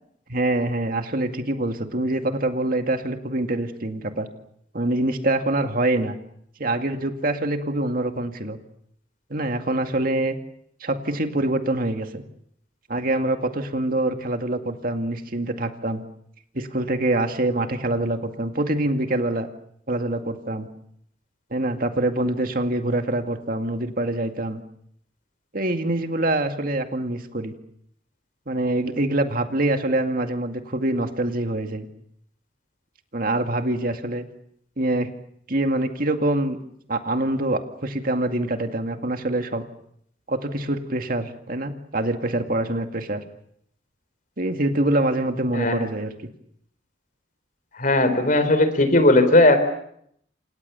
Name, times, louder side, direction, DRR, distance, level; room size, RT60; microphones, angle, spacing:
voice 1, 0.3-4.3 4.7-6.2 6.6-8.6 9.3-10.4 10.8-12.2 12.9-16.0 16.5-19.5 19.9-20.7 21.5-24.6 25.5-27.5 28.5-31.9 33.1-34.2 34.8-35.1 35.5-36.6 36.9-39.6 40.3-43.2 44.4-46.1, right 1 dB, 50° right, 6 dB, 2.2 m, -25 dB
voice 2, 47.8-49.6, left 2 dB, 45° left, 11 dB, 4.1 m, -17 dB
28.5 x 27.5 x 7.0 m, 0.71 s
head